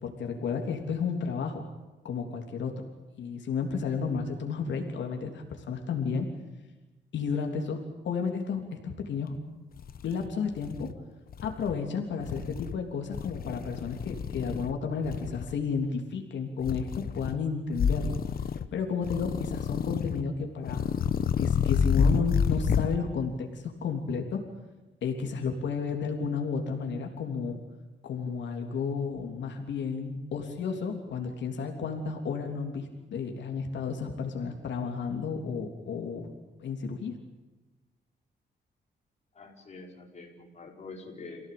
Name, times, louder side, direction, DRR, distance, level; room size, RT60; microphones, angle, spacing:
voice 1, 0.0-1.6 2.0-2.7 3.2-6.3 7.1-9.3 10.0-10.9 11.4-18.2 18.7-20.8 21.4-24.4 25.0-27.6 28.0-36.3 36.6-37.2, left 5 dB, 85° left, 3 dB, 3.4 m, -32 dB
sound 1, 9.3-9.4 9.8-10.9 11.3-11.7 12.2-12.8 13.1-14.7 15.0-15.5 16.6-17.4 17.7-18.7 19.0-20.2 20.6-23.0, left 7 dB, 55° left, 1.2 m, -29 dB
voice 2, 39.3-41.5, left 3 dB, 40° left, 0 dB, 5.1 m, -45 dB
28.0 x 17.0 x 8.7 m, 1.1 s
wide cardioid pair, 140°, 18 cm